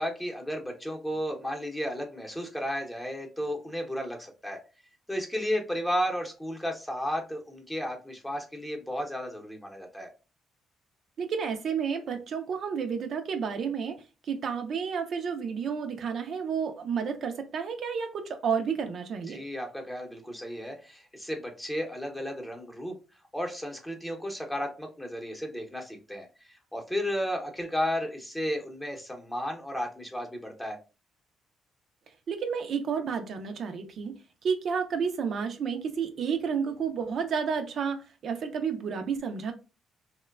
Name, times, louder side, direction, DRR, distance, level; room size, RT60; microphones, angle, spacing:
voice 1, 0.0-4.6 5.1-10.1 19.3-22.9 23.3-26.3 26.7-30.8, equal, 10° left, 0.8 m, -33 dB
voice 2, 11.2-19.4 32.3-34.2 34.4-39.5, right 6 dB, 60° right, 0.4 m, -31 dB
2.9 x 2.1 x 2.3 m
cardioid pair, 90°, 0 cm